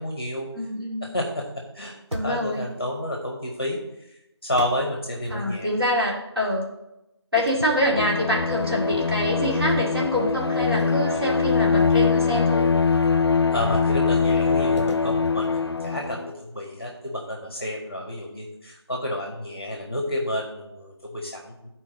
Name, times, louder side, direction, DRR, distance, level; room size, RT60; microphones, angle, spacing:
voice 1, 0.0-0.5 1.1-1.5 1.7-3.8 4.4-5.7 13.5-21.7, left 1 dB, 20° left, 0 dB, 0.9 m, -30 dB
voice 2, 0.5-1.0 2.1-2.7 5.3-6.7 7.3-12.7, left 1 dB, 55° right, -3 dB, 2.1 m, -25 dB
sound 1, 2.1-2.8 4.5-5.9 7.4-8.7 9.2-9.4 10.7-12.2 14.8-16.4, right 1 dB, 80° right, 1.6 m, -40 dB
Bowed string instrument, 7.8-16.3, left 5 dB, 60° left, 0.4 m, -22 dB
11.5 x 4.4 x 3.8 m, 0.89 s
figure-of-eight pair, 180°, 15 cm